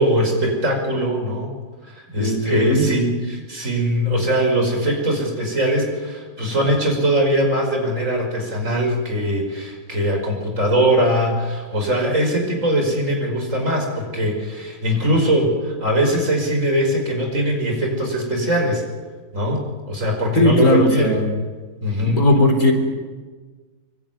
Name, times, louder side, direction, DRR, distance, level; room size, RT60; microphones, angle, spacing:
voice 1, 0.0-1.5 1.9-18.8 19.3-21.1 21.8-22.3, right 1 dB, 55° right, 2 dB, 5.7 m, -21 dB
voice 2, 2.1-2.9 20.4-21.3 22.0-22.7, left 1 dB, 70° left, 5 dB, 4.3 m, -17 dB
24.5 x 24.0 x 9.4 m, 1.4 s
omnidirectional pair, 1.6 m